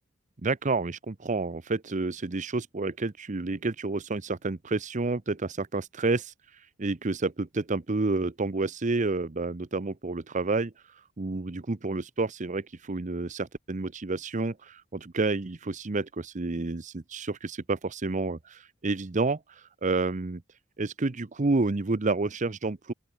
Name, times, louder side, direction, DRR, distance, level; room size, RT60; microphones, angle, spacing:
voice 1, 0.4-20.4 20.8-22.9, right 3 dB, 40° right, 0.7 m, -30 dB
open air
head